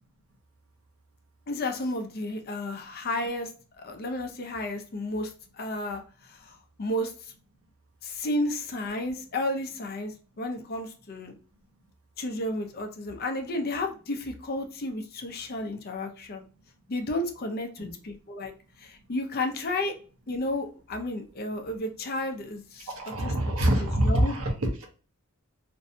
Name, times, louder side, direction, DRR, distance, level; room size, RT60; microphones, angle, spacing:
voice 1, 1.5-3.5 3.8-5.3 5.6-7.3 8.0-11.3 12.2-16.5 16.9-18.5 18.8-19.9 20.3-23.3 23.6-24.3, left 1 dB, 45° left, 5 dB, 0.5 m, -32 dB
voice 2, 22.9-24.9, right 1 dB, 75° right, 3 dB, 0.7 m, -25 dB
2.6 x 2.1 x 2.6 m, 0.37 s
head